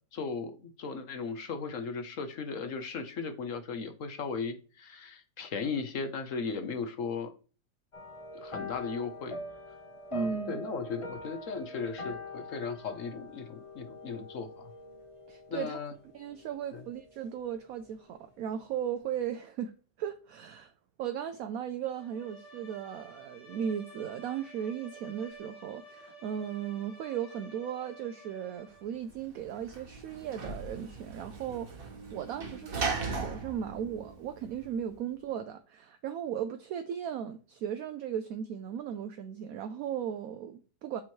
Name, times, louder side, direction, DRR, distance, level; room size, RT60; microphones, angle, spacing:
voice 1, 0.1-7.3 8.3-9.4 10.1-14.7 15.5-15.9 16.7-16.8, left 5 dB, 55° left, 1.1 m, -37 dB
sound 1, 7.9-17.5 17.8-18.2 18.5-18.6, left 1 dB, 25° left, 0.8 m, -44 dB
voice 2, 10.1-10.6 15.3-15.8 16.1-20.7 21.0-41.0, right 9 dB, 70° right, 0.9 m, -37 dB
Bowed string instrument, 21.9-29.0, right 1 dB, 75° left, 3.2 m, -52 dB
Sliding door / Slam, 29.0-34.9, right 4 dB, 40° right, 1.1 m, -38 dB
8.2 x 3.0 x 4.5 m
omnidirectional pair, 1.8 m